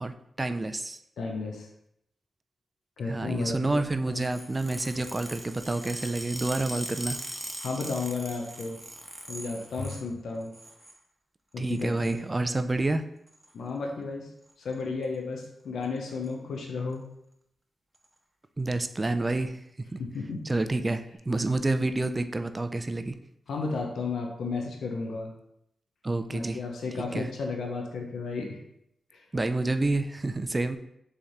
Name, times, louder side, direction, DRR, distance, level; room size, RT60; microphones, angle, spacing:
voice 1, 0.0-1.0 3.1-7.2 11.6-13.0 18.6-19.6 19.9-20.0 20.4-23.1 26.0-26.6 27.1-27.3 29.3-30.8, right 2 dB, 30° right, 9 dB, 0.4 m, -28 dB
voice 2, 1.2-1.7 3.0-4.3 7.6-8.8 9.3-10.5 11.5-12.2 12.5-12.6 13.5-14.3 14.6-17.0 20.0-20.4 23.5-25.3 26.3-28.6 29.1-29.2, left 4 dB, 80° left, 1 dB, 0.7 m, -33 dB
sound 1, 4.1-10.1 10.4-11.0 11.7-12.2 13.3-13.5 14.5-14.7 15.0-15.2 15.4-15.5 15.8-16.3 16.9-17.0 17.9-18.1, equal, 10° right, 1.0 m, -40 dB
4.1 x 3.3 x 3.7 m, 0.76 s
cardioid pair, 55°, 0 cm